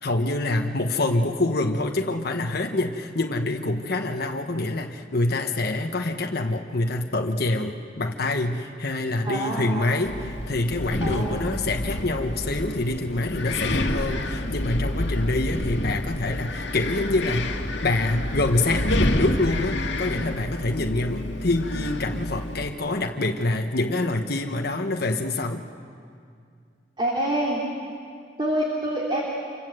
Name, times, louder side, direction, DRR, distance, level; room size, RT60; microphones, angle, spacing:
voice 1, 0.0-17.5 17.8-25.7, left 2 dB, 60° left, 3 dB, 1.3 m, -26 dB
voice 2, 9.2-9.9 11.0-11.4 27.0-27.6 28.4-29.2, right 1 dB, 25° right, -3 dB, 3.1 m, -26 dB
Wind, 10.1-22.7, left 1 dB, 80° left, 2.1 m, -29 dB
28.0 x 24.5 x 7.9 m, 2.3 s
head